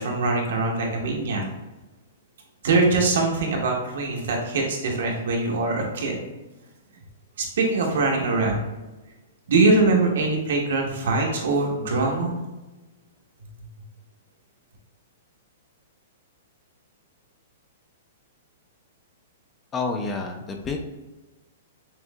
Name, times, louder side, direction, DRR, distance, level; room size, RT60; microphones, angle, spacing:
voice 1, 0.0-1.4 2.6-6.2 7.4-8.6 9.5-12.4, right 3 dB, 70° right, 0 dB, 1.2 m, -23 dB
voice 2, 19.7-20.8, left 4 dB, 15° left, 4 dB, 0.4 m, -28 dB
6.2 x 2.7 x 2.4 m, 1.1 s
hypercardioid pair, 170°, 0 cm